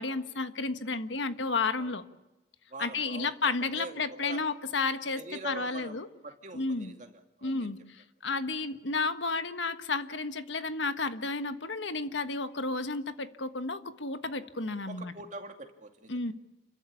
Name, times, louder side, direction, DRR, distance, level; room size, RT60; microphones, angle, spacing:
voice 1, 0.0-2.0 2.8-6.1 6.5-6.9 7.4-15.1 16.1-16.3, left 3 dB, 90° left, 10 dB, 1.5 m, -32 dB
voice 2, 2.7-4.4 5.2-6.0 6.2-7.1 7.4-7.7 14.9-16.3, right 2 dB, 40° right, 4 dB, 2.5 m, -44 dB
29.5 x 14.5 x 10.0 m, 1.0 s
head